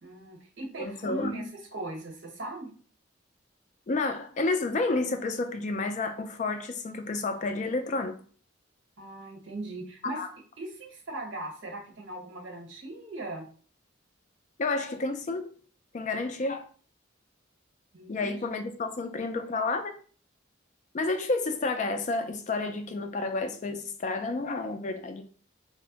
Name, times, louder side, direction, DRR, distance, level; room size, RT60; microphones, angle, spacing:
voice 1, 0.0-2.7 9.0-10.2 10.6-13.5 17.9-18.3, right 2 dB, 70° right, 1.0 m, -39 dB
voice 2, 0.8-1.5 3.9-8.2 10.1-10.3 14.6-15.5 15.9-16.6 18.1-19.9 20.9-25.2, left 3 dB, 40° left, 0.3 m, -30 dB
2.6 x 2.1 x 3.8 m
head